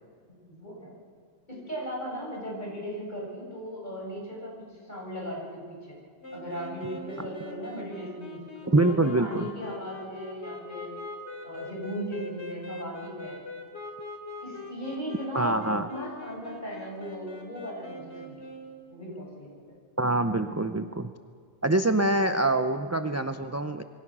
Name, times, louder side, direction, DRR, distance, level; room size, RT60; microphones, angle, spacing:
voice 1, 0.5-0.9 1.5-6.0 6.3-11.0 11.4-13.4 14.4-15.6 15.9-18.4 18.9-19.8, equal, 35° left, -3 dB, 7.1 m, -37 dB
sound 1, 6.2-18.8, left 2 dB, 50° left, 3.5 m, -42 dB
voice 2, 8.7-9.5 15.3-15.9 20.0-21.1 21.6-23.8, right 2 dB, 20° right, 8 dB, 0.5 m, -25 dB
27.0 x 23.0 x 6.2 m, 2.1 s
omnidirectional pair, 1.4 m